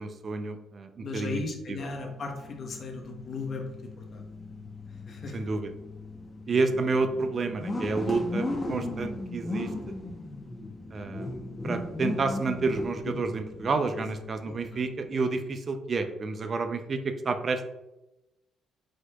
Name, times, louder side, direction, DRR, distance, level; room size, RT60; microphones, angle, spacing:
voice 1, 0.0-1.4 1.7-1.9 5.3-5.7 6.5-9.7 10.9-17.6, right 3 dB, 40° right, 8 dB, 0.5 m, -30 dB
voice 2, 1.0-4.3 5.1-5.5 14.4-14.8, left 3 dB, 50° left, 2 dB, 0.9 m, -37 dB
sound 1, 1.7-15.1, left 2 dB, 20° left, 0.9 m, -37 dB
4.6 x 4.3 x 2.3 m, 0.96 s
cardioid pair, 85°, 0 cm